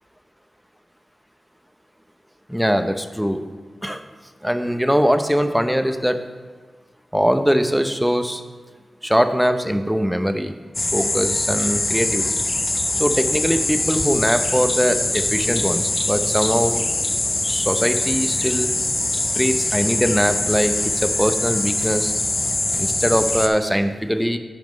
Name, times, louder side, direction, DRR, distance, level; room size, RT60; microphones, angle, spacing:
voice 1, 2.5-3.4 3.8-4.0 4.4-6.2 7.1-8.4 9.0-10.5 10.9-12.3 13.0-16.9 17.4-18.7 19.3-22.1 22.8-24.4, equal, 5° right, 8 dB, 0.8 m, -21 dB
sound 1, 10.7-23.5, left 2 dB, 35° left, 0.8 m, -23 dB
9.4 x 5.0 x 5.3 m, 1.5 s
cardioid pair, 40°, 0 cm